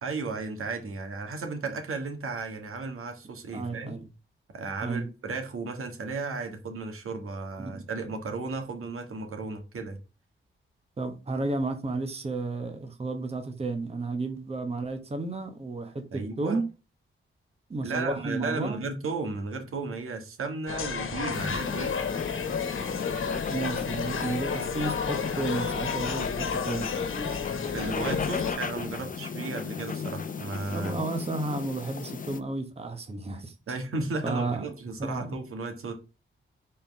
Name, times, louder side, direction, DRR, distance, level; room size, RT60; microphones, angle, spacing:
voice 1, 0.0-4.0 4.5-10.0 16.1-16.6 17.8-21.9 27.7-31.0 33.7-35.9, right 3 dB, 90° right, 1.8 m, -34 dB
voice 2, 3.5-4.0 4.8-5.1 7.6-7.9 11.0-16.6 17.7-18.8 23.3-26.9 30.7-33.5 34.2-34.6 35.0-35.4, right 3 dB, 30° right, 1.1 m, -32 dB
sound 1, 20.7-28.5, left 6 dB, 70° left, 1.3 m, -31 dB
sound 2, 21.3-32.4, left 6 dB, 40° left, 0.7 m, -36 dB
5.5 x 4.5 x 5.3 m
wide cardioid pair, 140°, 21 cm